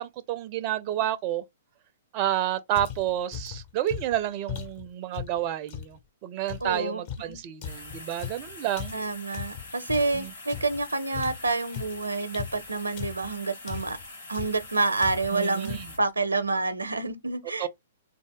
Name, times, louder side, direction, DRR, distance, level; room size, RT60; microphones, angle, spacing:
voice 1, 0.0-1.4 2.1-8.9 10.1-10.3 15.3-15.9 17.6-17.7, right 12 dB, 40° right, 0.4 m, -30 dB
sound 1, 2.8-6.0 6.5-10.9 11.1-13.3 13.7-14.1 14.3-14.7 15.0-15.4 15.6-16.0, left 9 dB, 45° left, 0.8 m, -38 dB
voice 2, 6.6-7.0 7.3-7.4 8.9-14.0 14.3-17.7, right 3 dB, 85° right, 0.6 m, -28 dB
sound 2, 7.6-16.0, left 2 dB, 85° left, 2.0 m, -44 dB
3.6 x 2.0 x 3.5 m
figure-of-eight pair, 115°, 0 cm